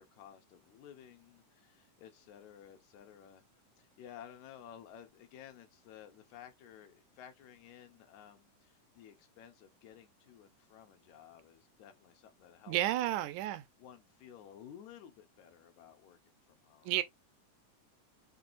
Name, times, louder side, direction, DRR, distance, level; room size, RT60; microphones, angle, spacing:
voice 1, 0.0-3.4 3.8-12.8 13.0-13.3 13.8-16.2 16.5-16.9, left 9 dB, 70° left, 2.2 m, -54 dB
voice 2, 12.7-13.6 16.9-17.0, right 14 dB, 75° right, 1.9 m, -31 dB
6.9 x 2.8 x 2.5 m
omnidirectional pair, 3.9 m